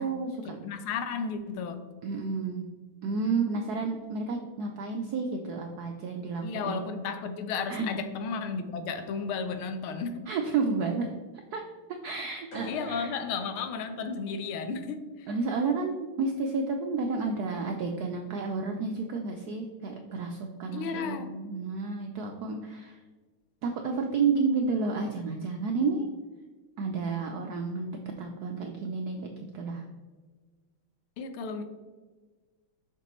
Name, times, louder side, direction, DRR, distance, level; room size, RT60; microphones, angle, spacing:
voice 1, 0.0-0.6 2.0-2.7 3.0-6.9 7.7-7.9 10.3-11.1 11.5-11.6 11.9-13.1 15.3-23.0 23.6-26.1 26.8-29.8, right 4 dB, 85° right, 3 dB, 0.8 m, -31 dB
voice 2, 0.6-1.9 6.4-10.2 12.7-15.3 20.7-21.3 31.2-31.6, left 5 dB, 85° left, 8 dB, 1.6 m, -33 dB
sound 1, 12.5-14.6, equal, 60° left, 2.6 m, -46 dB
6.8 x 6.0 x 3.0 m, 1.4 s
omnidirectional pair, 2.3 m